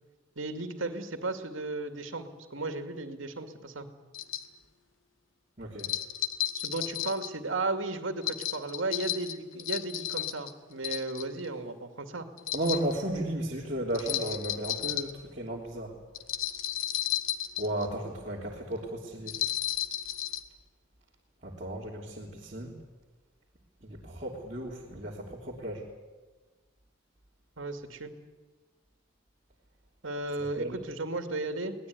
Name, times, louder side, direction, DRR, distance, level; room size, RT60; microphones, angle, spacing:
voice 1, 0.4-3.9 6.5-12.3 27.6-28.1 30.0-31.7, right 2 dB, 70° right, 7 dB, 2.4 m, -35 dB
sound 1, 4.1-4.5 5.8-7.3 8.2-10.5 10.8-11.5 12.4-12.9 13.9-15.1 16.1-17.9 19.3-20.4, left 12 dB, 80° left, 1.5 m, -33 dB
voice 2, 5.6-5.9 12.5-16.0 17.6-19.4 21.4-22.7 23.8-25.8 30.6-30.8, right 1 dB, 35° right, -5 dB, 3.3 m, -34 dB
23.0 x 19.0 x 9.6 m, 1.3 s
head